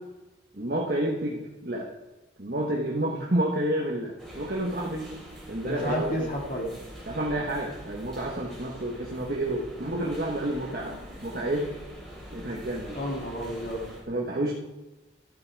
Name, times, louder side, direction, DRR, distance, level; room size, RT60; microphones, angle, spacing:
voice 1, 0.5-1.9 2.4-5.1 5.5-6.3 7.1-11.7 12.3-13.0 14.1-14.6, right 1 dB, 50° right, -2 dB, 1.3 m, -29 dB
sound 1, 4.2-14.0, equal, 5° left, 3.2 m, -44 dB
voice 2, 5.6-6.8 12.9-13.9, equal, 45° left, -1 dB, 2.4 m, -31 dB
13.0 x 9.5 x 4.7 m, 1.1 s
head